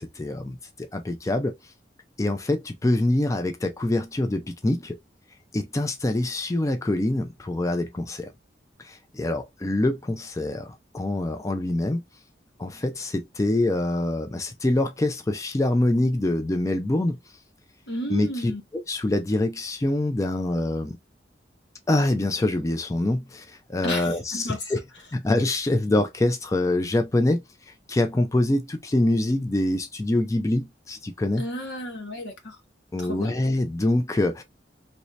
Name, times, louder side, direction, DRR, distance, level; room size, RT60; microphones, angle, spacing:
voice 1, 0.0-1.5 2.2-5.0 5.5-8.3 8.8-12.0 12.6-17.2 18.1-21.0 21.9-24.8 25.1-27.4 27.9-31.5 32.9-34.4, left 1 dB, 20° left, 0.4 m, -25 dB
voice 2, 17.9-18.6 23.8-24.7 31.4-32.6 33.0-33.3, equal, 90° left, 1.2 m, -32 dB
3.2 x 2.7 x 3.1 m
head